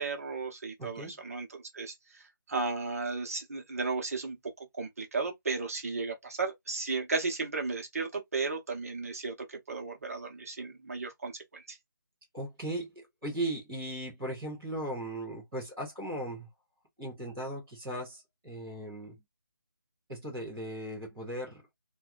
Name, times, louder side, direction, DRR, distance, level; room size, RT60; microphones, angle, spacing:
voice 1, 0.0-4.4 4.7-11.8, right 4 dB, 40° right, 0.8 m, -35 dB
voice 2, 0.8-1.2 12.3-12.9 13.2-16.5 17.0-19.2 20.1-21.6, right 1 dB, 5° right, 0.3 m, -37 dB
2.8 x 2.2 x 2.4 m
figure-of-eight pair, 170°, 12 cm